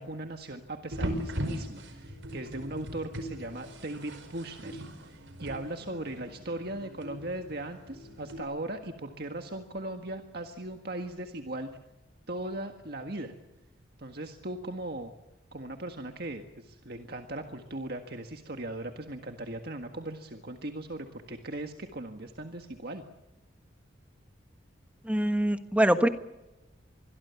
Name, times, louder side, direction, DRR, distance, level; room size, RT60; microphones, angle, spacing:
voice 1, 0.0-11.7 12.3-13.3 14.0-15.1 15.5-23.0, right 1 dB, 50° right, 5 dB, 1.7 m, -38 dB
sound 1, 0.9-8.4, equal, 75° right, 5.1 m, -39 dB
voice 2, 25.0-26.1, right 1 dB, 5° right, 8 dB, 1.3 m, -24 dB
25.5 x 21.5 x 7.1 m, 0.99 s
head